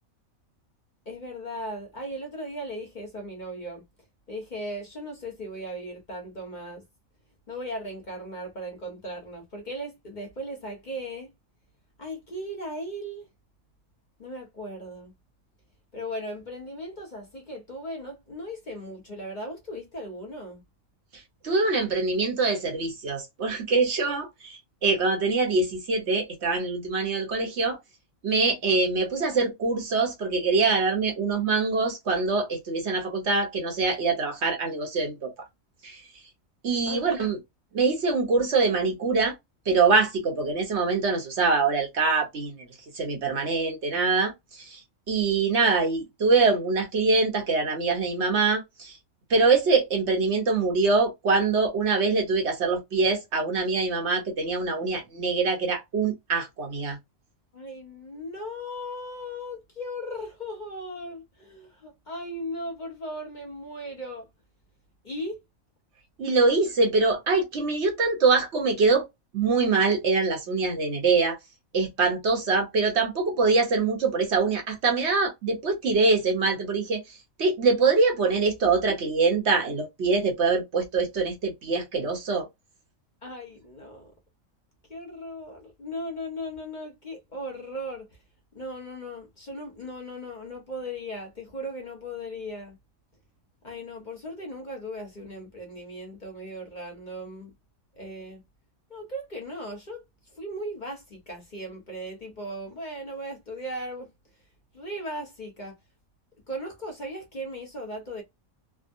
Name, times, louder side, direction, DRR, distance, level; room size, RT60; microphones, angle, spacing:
voice 1, 1.1-3.8 4.3-6.8 7.5-11.3 12.0-13.2 14.2-15.1 15.9-20.6 36.8-37.1 57.5-64.3 65.0-65.4 78.6-78.7 83.2-84.1 84.9-88.1 88.5-92.8 93.6-97.5 98.0-98.4 98.9-100.0 100.3-104.1 104.7-105.8 106.5-108.2, equal, 40° left, 1.0 m, -37 dB
voice 2, 21.4-27.8 28.2-35.3 35.8-36.0 36.6-37.4 37.7-39.3 39.7-42.5 42.9-44.8 45.1-49.0 49.3-57.0 66.2-69.1 69.3-71.4 71.7-77.0 77.4-82.5, right 4 dB, 60° right, 1.1 m, -24 dB
3.5 x 2.0 x 2.5 m
omnidirectional pair, 1.4 m